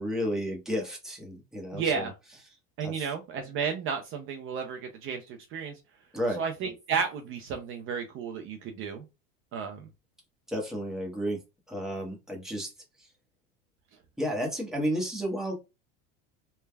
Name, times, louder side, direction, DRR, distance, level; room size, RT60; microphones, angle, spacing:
voice 1, 0.0-2.1 2.8-3.1 6.1-6.4 10.5-11.4 11.7-12.7 13.0-13.1 14.2-15.5, equal, ahead, -1 dB, 0.9 m, -32 dB
voice 2, 1.7-2.1 2.8-5.7 6.4-9.0 9.5-9.8, right 6 dB, 40° right, 4 dB, 0.5 m, -32 dB
3.3 x 2.2 x 2.2 m, 0.26 s
supercardioid pair, 115°, 32 cm